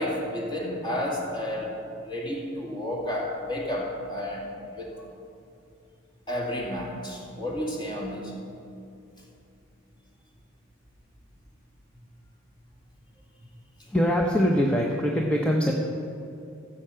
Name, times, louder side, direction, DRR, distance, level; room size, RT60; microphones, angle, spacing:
voice 1, 0.0-1.8 2.0-5.0 6.3-8.3, left 1 dB, 20° left, -2 dB, 2.1 m, -31 dB
voice 2, 13.9-15.7, equal, 5° left, -1 dB, 0.8 m, -23 dB
15.0 x 7.6 x 5.7 m, 2.6 s
head